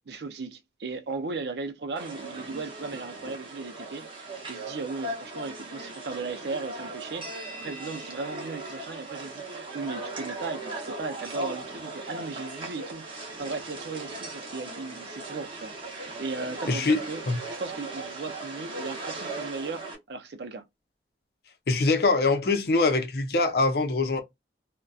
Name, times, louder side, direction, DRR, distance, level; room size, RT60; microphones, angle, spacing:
voice 1, 0.1-17.2 17.5-20.6, right 3 dB, 70° right, 0.5 m, -37 dB
sound 1, 2.0-20.0, right 2 dB, 30° right, 0.7 m, -38 dB
voice 2, 16.7-17.0 17.3-17.4 21.7-24.2, left 3 dB, 60° left, 0.6 m, -23 dB
2.5 x 2.1 x 2.3 m
head